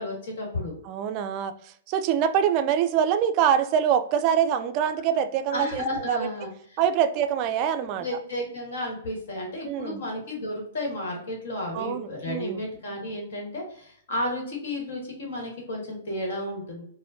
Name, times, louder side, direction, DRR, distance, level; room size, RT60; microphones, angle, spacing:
voice 1, 0.0-0.7 5.5-6.8 8.0-16.8, left 1 dB, 70° left, 1 dB, 1.3 m, -32 dB
voice 2, 0.8-1.5 1.9-6.3 6.8-8.1 9.6-10.0 11.7-12.7, right 8 dB, 40° right, 10 dB, 0.3 m, -24 dB
4.2 x 2.1 x 2.7 m, 0.62 s
hypercardioid pair, 115°, 0 cm